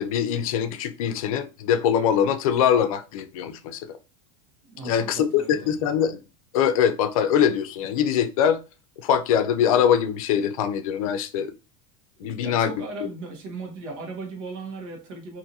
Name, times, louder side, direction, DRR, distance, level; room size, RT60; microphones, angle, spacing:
voice 1, 0.0-3.8 4.8-6.2 6.5-8.6 9.0-11.5 12.2-12.7, left 8 dB, 85° left, 0.5 m, -23 dB
voice 2, 4.7-5.1 5.4-5.8 12.2-15.4, right 3 dB, 70° right, 1.1 m, -37 dB
2.6 x 2.6 x 2.7 m
supercardioid pair, 145°, 17 cm